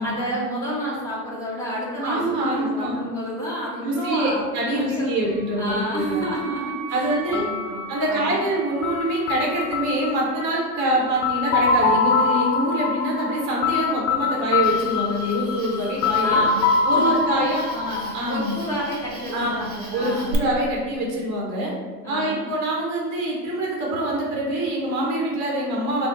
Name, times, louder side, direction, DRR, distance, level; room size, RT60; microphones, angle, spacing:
voice 1, 0.0-4.5 4.7-8.4 16.2-16.7 16.9-20.4 22.0-22.4, equal, 5° left, -7 dB, 0.5 m, -30 dB
voice 2, 2.0-2.9 3.8-6.2 6.9-7.4 7.9-16.4 16.8-17.6 18.1-18.6 19.3-19.5 19.9-21.7 22.0-26.1, right 1 dB, 35° right, -3 dB, 0.8 m, -25 dB
Wind instrument woodwind instrument, 5.2-10.0, right 7 dB, 55° right, 0.5 m, -39 dB
sound 1, 7.3-19.1, left 5 dB, 55° left, 0.6 m, -24 dB
Cricket, 14.6-20.3, right 3 dB, 90° right, 0.9 m, -41 dB
3.3 x 2.0 x 3.8 m, 1.5 s
hypercardioid pair, 120°, 49 cm